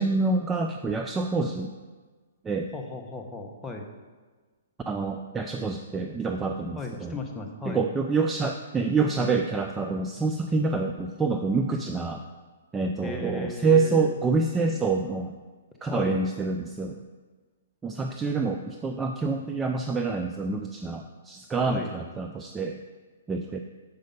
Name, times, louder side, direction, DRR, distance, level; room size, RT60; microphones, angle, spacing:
voice 1, 0.0-1.7 2.4-2.7 4.9-7.1 7.7-12.2 12.7-15.3 15.8-17.0 17.8-22.8 23.3-23.6, right 4 dB, 10° right, 4 dB, 0.3 m, -27 dB
voice 2, 2.7-3.9 6.8-7.8 13.0-14.2 15.9-16.2 21.7-21.9, left 2 dB, 10° left, 0 dB, 0.8 m, -36 dB
6.7 x 5.2 x 5.2 m, 1.4 s
hypercardioid pair, 140°, 0 cm